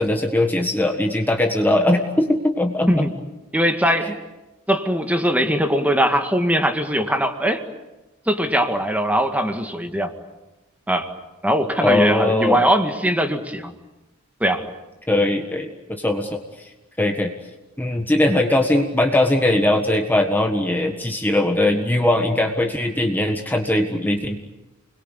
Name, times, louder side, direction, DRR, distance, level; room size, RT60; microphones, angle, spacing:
voice 1, 0.0-3.0 4.0-4.2 11.8-12.6 15.1-16.7 17.0-17.3 17.8-24.4, left 1 dB, 10° left, 3 dB, 1.6 m, -20 dB
voice 2, 3.5-4.1 4.7-7.6 8.3-10.1 10.9-11.1 11.4-13.7 14.4-14.6, equal, 5° right, 6 dB, 2.0 m, -20 dB
30.0 x 22.0 x 8.4 m, 1.0 s
head